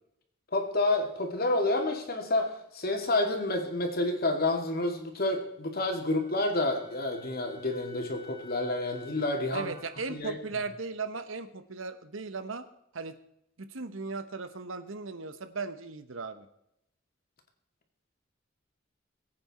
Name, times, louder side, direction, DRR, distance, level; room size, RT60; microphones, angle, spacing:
voice 1, 0.5-9.7 10.1-10.4, left 2 dB, 50° left, 4 dB, 2.5 m, -29 dB
Wind instrument woodwind instrument, 6.0-10.1, left 4 dB, 45° right, 3.4 m, -52 dB
voice 2, 9.5-12.6 12.9-13.2 13.6-16.5, right 4 dB, 85° right, 11 dB, 1.1 m, -37 dB
21.5 x 8.8 x 4.3 m, 0.79 s
head